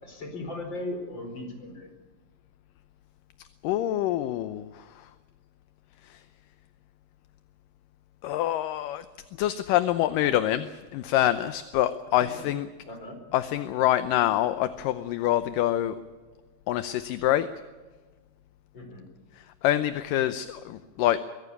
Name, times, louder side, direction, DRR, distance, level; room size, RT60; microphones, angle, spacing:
voice 1, 0.0-1.9 12.2-12.3 12.9-13.2 18.7-19.1, left 2 dB, 30° left, 4 dB, 5.2 m, -37 dB
voice 2, 3.6-5.1 6.0-6.2 8.2-9.1 9.4-12.7 13.3-16.0 16.7-17.5 19.4-21.2, left 13 dB, 75° left, 12 dB, 2.3 m, -26 dB
23.5 x 16.5 x 8.4 m, 1.4 s
omnidirectional pair, 4.1 m